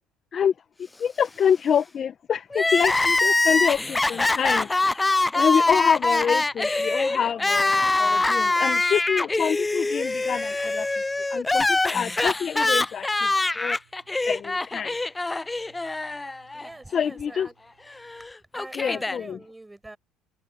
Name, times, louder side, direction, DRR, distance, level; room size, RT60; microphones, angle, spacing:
voice 1, 0.3-10.9 11.2-13.8 14.2-14.9 16.9-17.5 18.7-19.4, left 7 dB, 40° left, 1.2 m, -26 dB
Crying sobbing, 2.5-16.7 17.0-17.1 18.0-19.2, left 2 dB, 15° left, 0.3 m, -24 dB
sound 1, 2.5-18.3, right 24 dB, 90° right, 7.0 m, -63 dB
voice 2, 16.5-17.5 18.2-18.3 18.5-20.0, right 2 dB, 10° right, 7.8 m, -44 dB
supercardioid pair, 90°, 0 cm